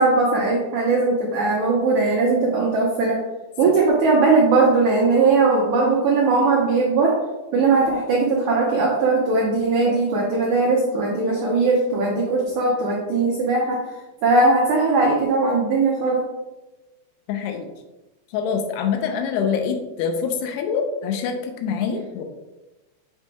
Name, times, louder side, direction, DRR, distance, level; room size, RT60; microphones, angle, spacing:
voice 1, 0.0-3.2 3.6-7.3 7.5-13.8 14.2-16.2, right 3 dB, 85° right, -3 dB, 1.7 m, -19 dB
voice 2, 17.3-17.7 18.3-22.2, left 6 dB, 85° left, 5 dB, 2.8 m, -25 dB
7.4 x 5.8 x 2.2 m, 1.1 s
omnidirectional pair, 4.7 m